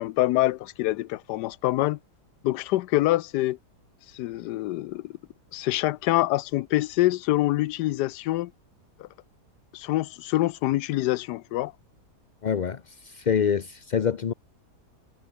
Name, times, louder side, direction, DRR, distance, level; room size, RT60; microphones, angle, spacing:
voice 1, 0.0-2.0 2.4-3.6 4.1-5.1 5.5-8.5 9.0-9.1 9.7-11.7, left 16 dB, 85° left, 1.2 m, -25 dB
voice 2, 12.4-14.3, left 7 dB, 50° left, 0.5 m, -26 dB
omnidirectional pair, 1.7 m